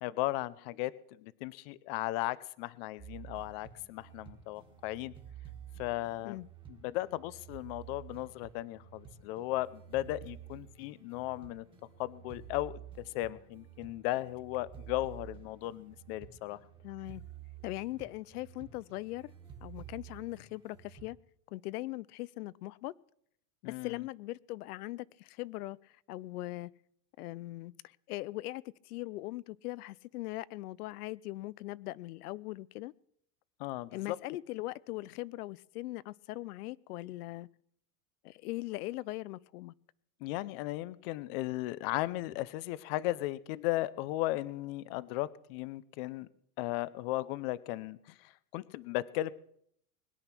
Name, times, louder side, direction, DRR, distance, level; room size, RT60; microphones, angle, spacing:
voice 1, 0.0-5.1 5.8-6.4 6.8-11.6 12.0-12.7 13.1-16.6 23.6-24.0 33.6-34.2 40.2-46.3 46.6-49.3, left 17 dB, 40° left, 0.6 m, -36 dB
sound 1, 3.0-21.1, right 9 dB, 10° right, 1.7 m, -51 dB
voice 2, 16.8-17.2 17.6-19.3 19.6-21.2 21.5-22.9 23.6-26.7 27.2-32.9 33.9-37.5 38.2-39.7, left 18 dB, 80° left, 0.6 m, -40 dB
21.0 x 10.0 x 6.0 m
supercardioid pair, 165°, 44 cm